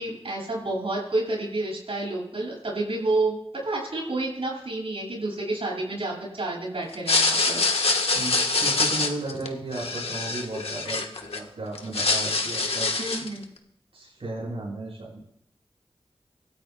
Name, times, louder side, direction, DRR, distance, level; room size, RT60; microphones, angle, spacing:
voice 1, 0.0-7.6 13.0-13.4, right 2 dB, 70° right, -3 dB, 7.3 m, -29 dB
sound 1, 6.9-11.4 11.7-13.4, left 3 dB, 85° left, 1.4 m, -25 dB
voice 2, 8.1-12.9 13.9-15.2, right 2 dB, 90° right, -7 dB, 7.2 m, -35 dB
25.5 x 13.5 x 2.3 m, 0.74 s
wide cardioid pair, 45°, 10 cm